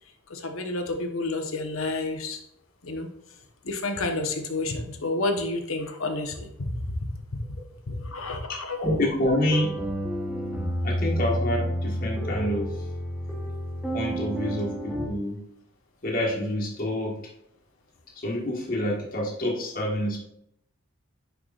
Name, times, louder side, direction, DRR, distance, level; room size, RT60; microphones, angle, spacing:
voice 1, 0.3-2.4 2.8-3.1 3.6-6.7 7.9-8.9, left 2 dB, 80° left, 5 dB, 1.0 m, -30 dB
voice 2, 8.8-9.7 10.8-12.8 13.9-15.4 16.0-17.2 18.1-20.2, left 1 dB, 40° left, -3 dB, 1.5 m, -27 dB
sound 1, 9.4-15.1, equal, 5° right, 0.9 m, -30 dB
10.0 x 4.8 x 2.5 m, 0.76 s
head